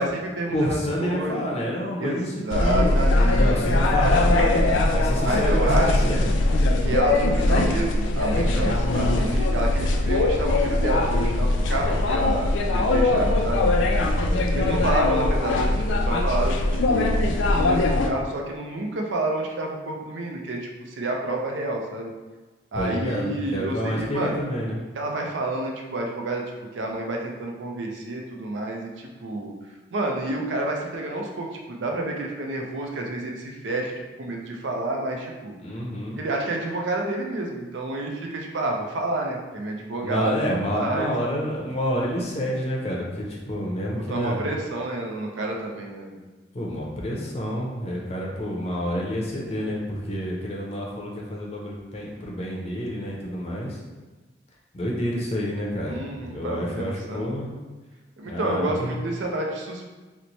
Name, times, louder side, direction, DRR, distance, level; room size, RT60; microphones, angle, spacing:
voice 1, 0.0-1.4 2.0-3.4 3.9-4.0 5.2-6.1 6.8-13.7 14.0-14.1 14.5-16.6 16.9-17.0 17.5-22.1 22.7-24.3 25.0-26.4 26.7-29.5 29.9-33.9 34.2-35.5 36.2-40.3 40.7-41.1 44.1-46.2 55.9-57.2 58.2-59.9, right 2 dB, 80° right, 1 dB, 0.5 m, -29 dB
voice 2, 0.5-2.9 3.3-6.2 14.3-14.8 22.7-24.8 35.6-36.2 40.0-44.4 46.5-53.8 54.7-56.0 56.3-57.5 58.3-59.0, equal, 35° left, -2 dB, 0.6 m, -28 dB
sound 1, 2.5-18.1, left 2 dB, 80° left, 0.4 m, -21 dB
3.0 x 2.1 x 3.9 m, 1.3 s
head